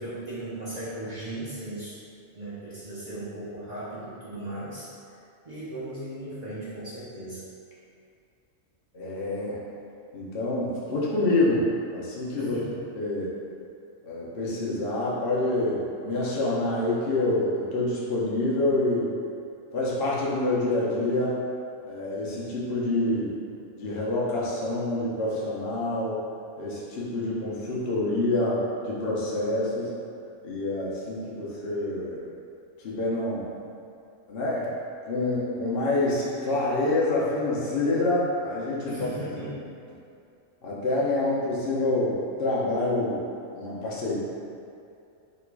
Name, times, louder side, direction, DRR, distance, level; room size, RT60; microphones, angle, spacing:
voice 1, 0.0-2.0 2.3-4.9 5.4-7.4 12.4-12.8 38.9-39.6, right 1 dB, 40° right, -11 dB, 0.8 m, -37 dB
voice 2, 8.9-9.6 10.1-11.7 11.9-12.6 12.9-13.3 14.0-19.1 19.7-21.5 21.9-23.4 23.8-26.2 26.6-29.9 30.4-32.2 32.8-33.5 34.3-34.7 35.0-39.0 40.6-43.3 43.5-44.2, left 2 dB, 50° left, -6 dB, 0.9 m, -27 dB
3.0 x 3.0 x 4.6 m, 2.6 s
omnidirectional pair, 1.3 m